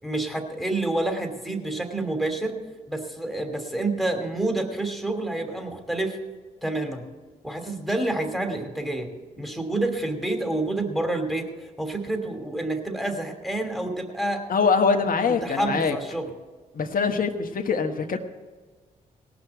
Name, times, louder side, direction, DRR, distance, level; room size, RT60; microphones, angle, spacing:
voice 1, 0.0-2.6 2.9-6.2 6.6-7.0 7.4-9.1 9.4-14.4 15.3-16.3, right 2 dB, ahead, 5 dB, 2.8 m, -28 dB
voice 2, 14.5-16.0 16.7-18.2, left 5 dB, 50° left, 5 dB, 1.3 m, -23 dB
18.0 x 6.1 x 8.1 m, 1.4 s
hypercardioid pair, 45°, 18 cm